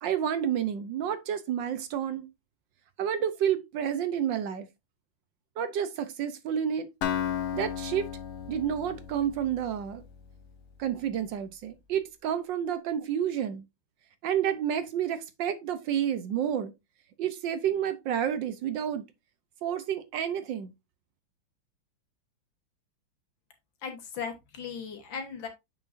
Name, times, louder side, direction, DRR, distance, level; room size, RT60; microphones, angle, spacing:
voice 1, 0.0-2.3 3.0-4.7 5.6-6.9 7.5-8.1 8.5-10.0 10.8-13.6 14.2-16.7 17.2-19.1 19.6-20.7, right 9 dB, 70° right, 1.3 m, -30 dB
Acoustic guitar, 7.0-10.9, left 9 dB, 80° left, 1.8 m, -35 dB
voice 2, 23.8-25.5, left 6 dB, 65° left, 2.0 m, -37 dB
7.7 x 6.1 x 2.6 m
omnidirectional pair, 2.3 m